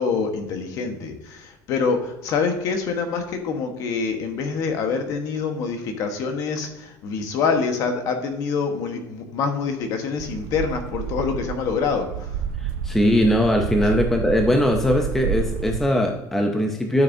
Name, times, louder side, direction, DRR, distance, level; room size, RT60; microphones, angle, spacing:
voice 1, 0.0-12.3, left 5 dB, 45° left, 5 dB, 1.3 m, -26 dB
sound 1, 10.2-15.8, right 8 dB, 85° right, 0.5 m, -30 dB
voice 2, 12.6-17.0, left 1 dB, 5° left, 3 dB, 0.5 m, -20 dB
12.0 x 6.6 x 2.7 m, 0.91 s
cardioid pair, 180°, 8 cm